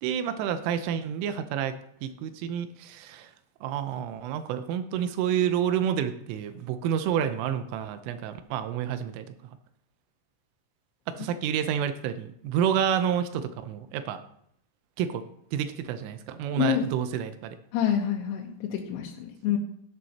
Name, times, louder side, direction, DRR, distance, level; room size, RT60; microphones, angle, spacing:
voice 1, 0.0-3.3 3.6-9.3 11.1-14.2 15.0-15.2 15.5-17.6, right 9 dB, 80° right, 10 dB, 3.2 m, -29 dB
voice 2, 17.7-19.6, left 10 dB, 85° left, 0 dB, 3.7 m, -27 dB
14.0 x 11.0 x 2.9 m, 0.71 s
omnidirectional pair, 5.9 m